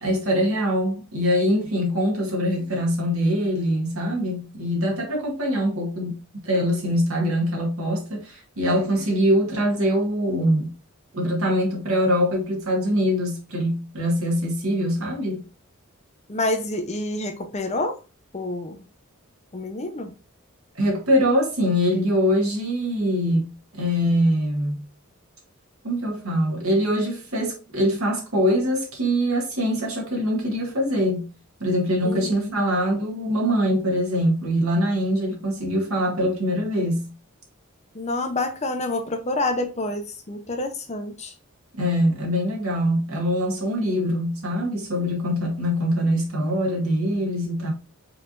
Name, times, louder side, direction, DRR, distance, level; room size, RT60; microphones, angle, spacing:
voice 1, 0.0-6.2 6.4-10.7 11.1-15.4 20.8-24.8 25.8-31.2 31.6-37.1 41.8-47.7, equal, 90° right, 1.9 m, -23 dB
voice 2, 16.3-18.0 18.3-18.8 19.5-20.1 32.0-32.5 37.9-41.3, left 2 dB, 35° left, 0.7 m, -28 dB
4.7 x 3.4 x 2.5 m
head